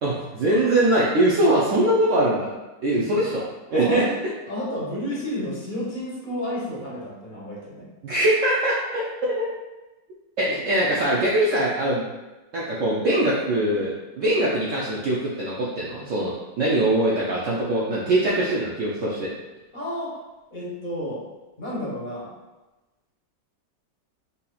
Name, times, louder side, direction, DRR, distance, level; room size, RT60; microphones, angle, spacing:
voice 1, 0.0-2.5 2.8-3.4 3.7-4.0 8.0-9.5 10.4-12.0 12.5-19.3, right 1 dB, 80° right, -6 dB, 0.7 m, -22 dB
voice 2, 2.9-3.2 3.7-4.1 4.5-7.9 10.5-10.7 19.7-20.2 20.5-21.2 21.6-22.3, left 1 dB, 40° left, -6 dB, 0.7 m, -31 dB
4.1 x 2.7 x 2.3 m, 1.1 s
omnidirectional pair, 1.9 m